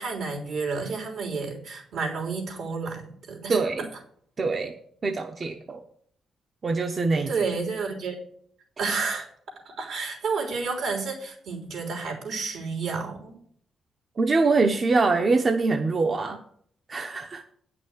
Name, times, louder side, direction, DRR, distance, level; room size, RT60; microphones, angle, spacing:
voice 1, 0.0-3.6 7.3-8.2 8.8-9.3 9.7-13.4, right 4 dB, 75° right, 0 dB, 3.5 m, -30 dB
voice 2, 3.5-3.9 4.4-4.7 5.0-5.8 6.6-7.3 14.2-16.4 16.9-17.4, right 3 dB, 40° right, 4 dB, 0.9 m, -24 dB
9.3 x 6.1 x 7.9 m, 0.62 s
cardioid pair, 105°, 0 cm